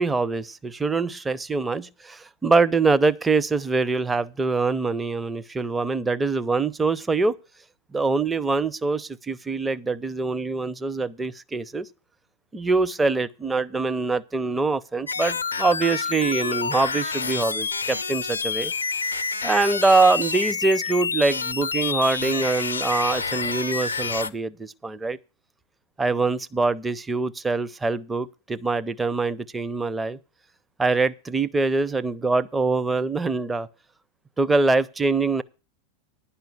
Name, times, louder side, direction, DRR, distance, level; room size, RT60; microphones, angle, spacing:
voice 1, 0.0-7.4 7.9-11.9 12.5-18.7 19.4-25.2 26.0-30.2 30.8-33.7 34.4-35.4, right 3 dB, 10° right, 0.5 m, -24 dB
sound 1, 15.1-24.3, left 5 dB, 75° left, 0.4 m, -28 dB
10.5 x 5.6 x 8.2 m
figure-of-eight pair, 90°, 0 cm